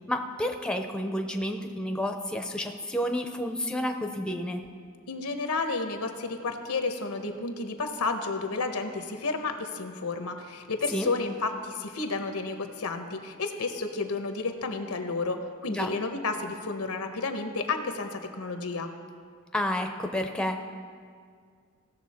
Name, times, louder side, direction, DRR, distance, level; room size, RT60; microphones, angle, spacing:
voice 1, 0.1-4.6 10.9-11.1 15.7-15.9 19.5-20.6, left 1 dB, 5° left, 4 dB, 0.5 m, -30 dB
voice 2, 5.1-18.9, left 3 dB, 85° left, 6 dB, 1.0 m, -31 dB
17.0 x 6.7 x 4.3 m, 2.1 s
head